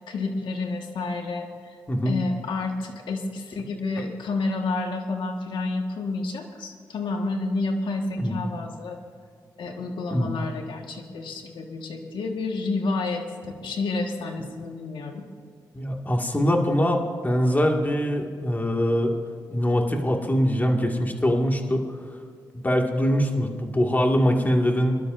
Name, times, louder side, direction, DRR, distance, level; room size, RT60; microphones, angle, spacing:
voice 1, 0.0-1.8 2.0-9.0 9.6-15.2, left 3 dB, 80° left, 3 dB, 1.6 m, -30 dB
voice 2, 15.7-19.1 19.5-22.0 22.5-25.0, equal, 20° left, 2 dB, 2.0 m, -23 dB
24.0 x 12.0 x 2.6 m, 2.1 s
cardioid pair, 60°, 8 cm